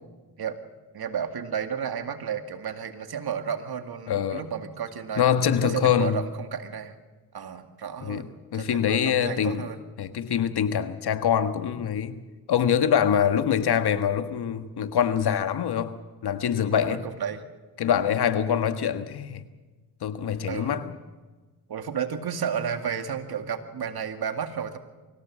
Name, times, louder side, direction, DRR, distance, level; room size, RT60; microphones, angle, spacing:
voice 1, 0.9-5.3 5.6-6.9 7.3-9.8 16.8-17.4 20.5-20.8 21.7-24.8, right 7 dB, 70° right, 7 dB, 2.2 m, -32 dB
voice 2, 4.1-4.4 5.2-6.2 8.0-8.3 8.5-9.7 10.0-12.2 12.5-16.0 16.2-17.0 17.8-19.4 20.0-20.9, left 8 dB, 75° left, 9 dB, 1.6 m, -24 dB
24.5 x 16.5 x 7.5 m, 1.2 s
supercardioid pair, 50°, 39 cm